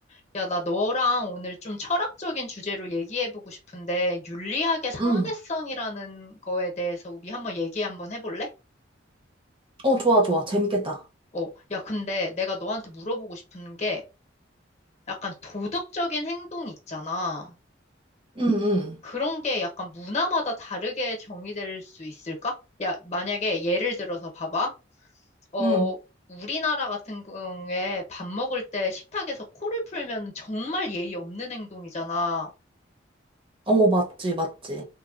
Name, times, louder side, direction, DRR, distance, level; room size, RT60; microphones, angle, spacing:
voice 1, 0.1-8.5 11.3-14.0 15.1-17.5 19.0-22.5 22.8-24.7 25.5-26.0 26.3-32.5, left 2 dB, 35° left, 0.8 m, -30 dB
voice 2, 9.8-11.0 18.4-19.0 25.6-25.9 33.7-34.8, right 1 dB, 25° right, 0.6 m, -23 dB
3.1 x 2.2 x 2.4 m
head